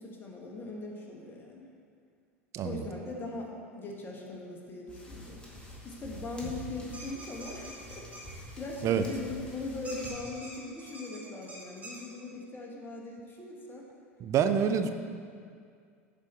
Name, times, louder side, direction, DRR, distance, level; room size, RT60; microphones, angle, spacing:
voice 1, 0.0-1.7 2.6-5.5 5.8-13.9, left 2 dB, 30° left, -1 dB, 1.6 m, -40 dB
sound 1, 4.9-10.1, equal, 10° left, 2.0 m, -47 dB
sound 2, 6.9-8.3 9.8-12.0, right 1 dB, 20° right, 2.5 m, -45 dB
voice 2, 14.2-14.9, right 8 dB, 40° right, 8 dB, 0.6 m, -26 dB
11.5 x 5.1 x 4.5 m, 2.2 s
hypercardioid pair, 80°, 7 cm